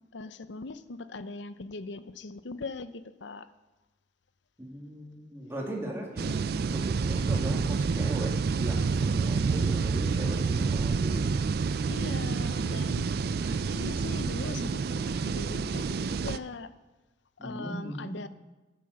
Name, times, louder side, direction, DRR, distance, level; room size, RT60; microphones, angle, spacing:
voice 1, 0.1-3.5 11.9-13.0 13.4-16.7 17.4-18.3, left 3 dB, 70° left, 13 dB, 0.7 m, -40 dB
voice 2, 4.6-6.4 6.7-11.3 17.4-18.2, right 1 dB, 15° right, -2 dB, 2.2 m, -38 dB
sound 1, 6.2-16.4, right 5 dB, 50° right, 0.4 m, -28 dB
12.0 x 9.5 x 6.5 m, 1.1 s
head